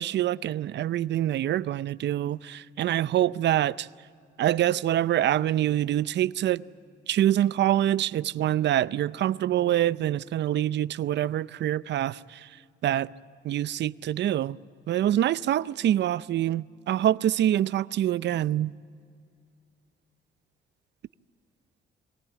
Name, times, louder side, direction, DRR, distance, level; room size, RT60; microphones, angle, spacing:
voice 1, 0.0-3.9 4.4-6.6 7.1-12.2 12.8-13.1 13.4-14.6 14.9-18.7, right 12 dB, 60° right, 0.5 m, -25 dB
23.0 x 18.5 x 9.2 m
cardioid pair, 90°, 20 cm